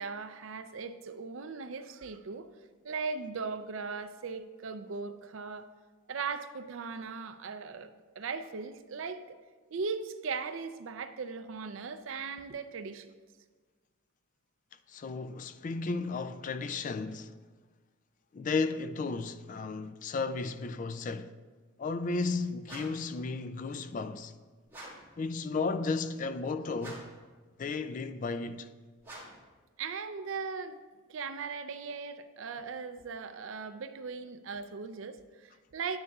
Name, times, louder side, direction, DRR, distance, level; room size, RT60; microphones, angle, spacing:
voice 1, 0.0-2.5 2.8-5.7 6.1-7.9 8.2-9.4 9.7-13.1 29.8-30.8 31.1-36.0, right 5 dB, 70° right, 0.5 m, -38 dB
voice 2, 14.9-17.3 18.3-21.3 21.8-24.3 25.2-27.1 27.6-28.7, left 4 dB, 40° left, 0.3 m, -34 dB
sound 1, 22.6-23.1 24.7-25.1 26.8-27.3 29.0-29.5, right 1 dB, 10° right, 1.9 m, -47 dB
11.0 x 9.6 x 2.4 m
head